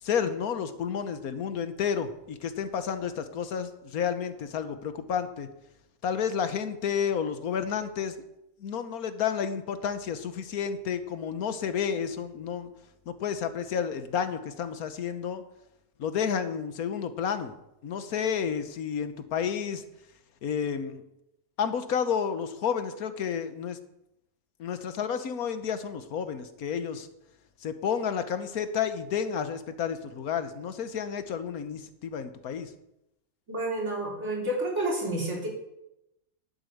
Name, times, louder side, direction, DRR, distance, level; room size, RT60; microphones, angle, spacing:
voice 1, 0.0-5.5 6.0-8.2 8.6-12.7 13.1-15.4 16.0-17.5 17.8-19.8 20.4-21.0 21.6-23.8 24.6-27.1 27.6-32.7, left 7 dB, 90° left, 10 dB, 1.5 m, -31 dB
voice 2, 33.5-35.5, right 1 dB, 50° right, -3 dB, 4.0 m, -30 dB
11.0 x 8.2 x 6.7 m, 0.85 s
omnidirectional pair, 1.5 m